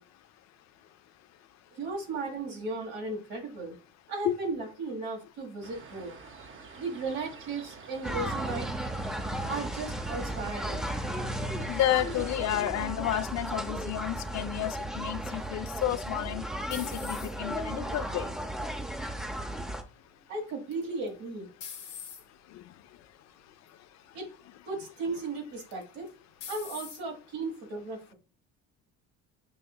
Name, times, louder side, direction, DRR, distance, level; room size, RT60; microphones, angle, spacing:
voice 1, 1.7-3.8 4.1-6.1 6.8-8.9 9.5-10.8 20.3-21.5 24.1-24.3 24.7-26.1 26.5-28.1, right 3 dB, 80° right, 1.4 m, -36 dB
sound 1, 5.6-12.7, right 5 dB, 35° right, 0.8 m, -48 dB
sound 2, 8.0-19.8, right 1 dB, ahead, 0.6 m, -35 dB
voice 2, 11.7-18.3 22.5-22.6, left 13 dB, 55° left, 0.4 m, -31 dB
sound 3, 15.7-17.6 18.2-18.7 20.7-21.1 21.6-22.2 23.0-23.2 23.7-23.8 25.7-26.1 26.4-27.0, left 8 dB, 85° left, 0.8 m, -43 dB
6.7 x 2.7 x 2.2 m
hypercardioid pair, 65°, 34 cm